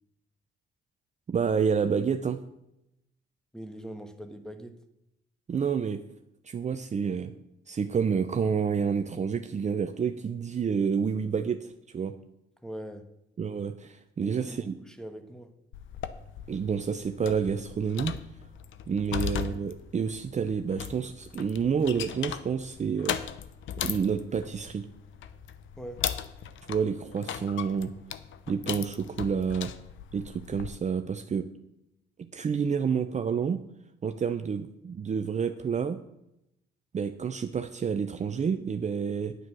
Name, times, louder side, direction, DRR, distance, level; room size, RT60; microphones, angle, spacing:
voice 1, 1.3-2.4 5.5-6.0 6.4-7.3 7.7-12.2 13.4-14.8 16.5-18.2 18.9-23.2 23.8-24.9 26.7-27.9 28.5-29.7 30.1-31.5 32.2-33.6 34.0-36.0 36.9-39.4, right 6 dB, 35° right, 8 dB, 0.7 m, -29 dB
voice 2, 3.5-4.8 12.6-13.1 14.2-15.5 25.8-26.1, right 1 dB, 5° left, 8 dB, 1.5 m, -42 dB
sound 1, 15.7-30.8, left 9 dB, 75° left, 0.8 m, -38 dB
9.5 x 9.2 x 6.2 m, 0.84 s
cardioid pair, 90°, 20 cm